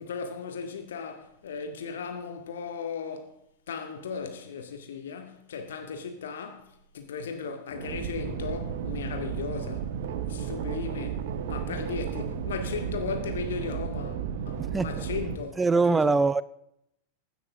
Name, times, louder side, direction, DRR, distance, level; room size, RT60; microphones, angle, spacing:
voice 1, 0.0-3.3 3.7-10.0 10.3-16.2, left 5 dB, 60° left, 2.1 m, -36 dB
sound 1, 7.7-15.4, right 8 dB, 55° right, 1.2 m, -33 dB
voice 2, 14.6-15.0 15.6-16.4, right 4 dB, 10° right, 0.4 m, -23 dB
16.5 x 10.0 x 3.6 m
figure-of-eight pair, 90°, 0 cm